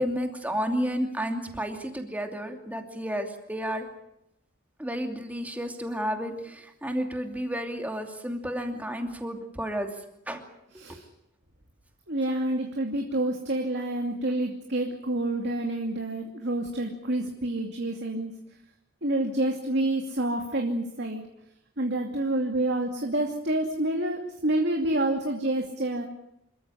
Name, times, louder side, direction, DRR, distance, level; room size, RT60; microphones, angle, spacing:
voice 1, 0.0-3.9 4.8-9.9 10.3-10.4, equal, 5° right, 4 dB, 2.7 m, -31 dB
voice 2, 10.7-11.1 12.1-18.4 19.0-21.3 21.8-26.0, right 1 dB, 55° right, 2 dB, 2.6 m, -28 dB
27.5 x 14.0 x 10.0 m, 0.81 s
head